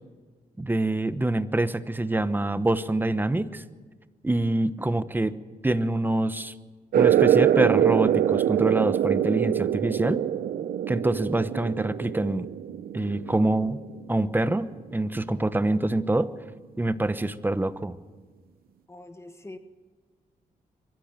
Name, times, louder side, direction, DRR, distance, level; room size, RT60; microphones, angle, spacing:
voice 1, 0.6-3.6 4.2-5.4 5.6-6.5 6.9-10.2 10.9-12.5 12.9-13.8 14.1-16.3 16.8-18.0, right 2 dB, 15° right, 13 dB, 1.0 m, -25 dB
sound 1, 6.9-14.1, right 10 dB, 85° right, 0.7 m, -24 dB
voice 2, 18.9-19.6, left 2 dB, 20° left, 8 dB, 1.5 m, -43 dB
23.0 x 15.5 x 9.0 m, 1.4 s
cardioid pair, 105°, 15 cm